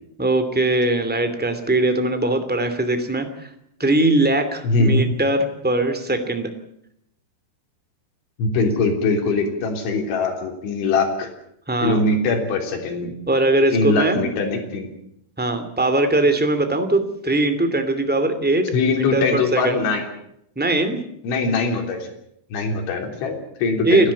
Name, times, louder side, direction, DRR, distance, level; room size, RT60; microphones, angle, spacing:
voice 1, 0.2-3.5 3.8-6.5 11.7-12.0 13.3-14.2 15.4-19.8 20.5-21.0 23.8-24.1, right 2 dB, 5° right, 7 dB, 1.0 m, -20 dB
voice 2, 4.6-5.1 8.4-11.3 11.8-13.1 13.7-14.9 18.7-20.0 21.2-22.0 22.5-24.1, left 3 dB, 85° left, 2 dB, 5.8 m, -22 dB
29.5 x 13.0 x 8.5 m, 0.74 s
omnidirectional pair, 5.3 m